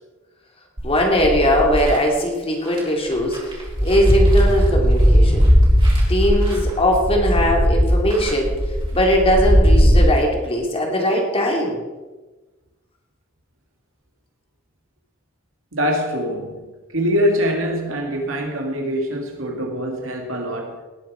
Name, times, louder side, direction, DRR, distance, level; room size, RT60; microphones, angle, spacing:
voice 1, 0.8-5.4 6.1-8.5 8.9-11.8, equal, 30° left, 2.6 m, -20 dB
sound 1, 0.8-2.0 2.7-2.8 3.1-10.0, equal, 25° right, 3.6 m, -17 dB
voice 2, 15.7-20.8, equal, 80° right, 2.5 m, -24 dB
18.5 x 7.5 x 5.0 m
head